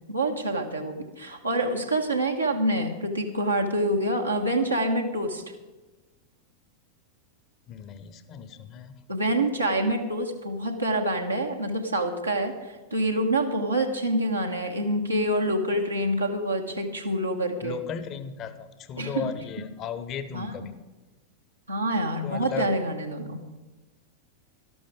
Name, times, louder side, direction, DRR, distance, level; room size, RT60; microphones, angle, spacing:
voice 1, 0.1-5.4 9.1-17.8 19.0-19.4 20.3-20.5 21.7-23.4, right 1 dB, 85° right, 0 dB, 1.4 m, -26 dB
voice 2, 7.7-9.0 17.6-20.8 22.2-22.7, left 7 dB, 35° left, 12 dB, 0.9 m, -36 dB
12.5 x 12.5 x 5.0 m, 1.2 s
figure-of-eight pair, 90°, 0 cm